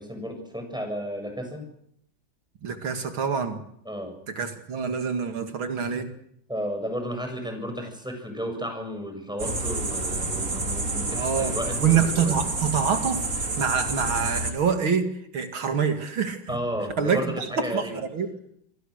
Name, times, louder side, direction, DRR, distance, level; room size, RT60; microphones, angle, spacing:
voice 1, 0.0-1.6 3.9-4.1 6.5-12.4 16.5-18.0, equal, ahead, 4 dB, 7.2 m, -33 dB
voice 2, 2.6-3.6 4.4-6.1 11.1-11.5 11.8-15.1 15.3-16.4 17.0-18.3, right 7 dB, 90° right, 6 dB, 3.1 m, -26 dB
sound 1, 9.4-14.5, right 2 dB, 40° right, 3.0 m, -29 dB
28.0 x 23.5 x 6.6 m, 0.71 s
omnidirectional pair, 2.2 m